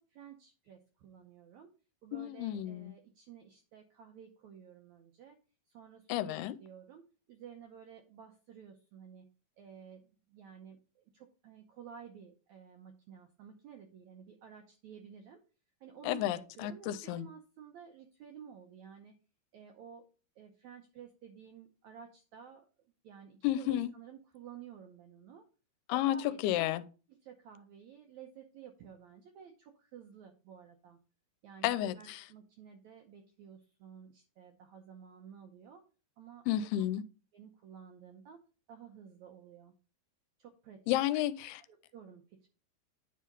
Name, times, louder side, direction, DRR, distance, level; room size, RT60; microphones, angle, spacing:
voice 1, 0.0-1.7 2.0-5.4 5.7-9.3 9.6-15.4 15.8-19.2 19.5-20.1 20.3-22.6 23.0-25.5 25.9-26.7 27.1-31.0 31.4-35.8 36.2-36.7 37.3-38.4 38.7-39.7 40.4-40.8 41.7-42.5, right 7 dB, 80° right, 1.6 m, -53 dB
voice 2, 2.1-2.9 6.1-6.5 16.0-17.3 23.4-23.9 25.9-26.2 26.4-26.8 31.6-31.9 36.5-37.0 40.9-41.6, left 13 dB, 90° left, 2.5 m, -31 dB
9.8 x 3.8 x 5.3 m
omnidirectional pair, 4.5 m